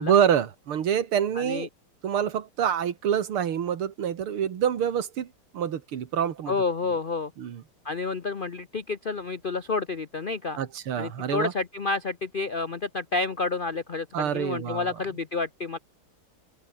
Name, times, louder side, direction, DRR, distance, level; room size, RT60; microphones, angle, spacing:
voice 1, 0.0-1.7 2.0-6.5 7.4-7.6 10.6-11.5 14.1-14.9, right 9 dB, 85° right, 2.5 m, -26 dB
voice 2, 1.3-1.7 6.5-7.3 7.8-10.6 11.0-15.8, left 3 dB, 85° left, 0.4 m, -29 dB
omnidirectional pair, 2.3 m